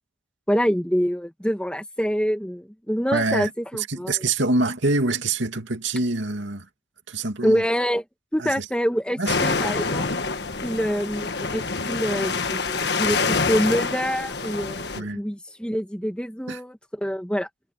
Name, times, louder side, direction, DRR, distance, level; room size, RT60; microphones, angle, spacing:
voice 1, 0.5-4.1 7.4-8.0 8.3-10.1 10.6-11.6 11.9-17.5, equal, 5° left, 1.9 m, -26 dB
voice 2, 3.1-6.7 7.1-7.6 8.4-8.6 9.2-9.7 14.9-15.2 16.5-16.6, right 2 dB, 75° right, 2.5 m, -26 dB
sound 1, 9.3-15.0, left 4 dB, 60° left, 1.5 m, -26 dB
head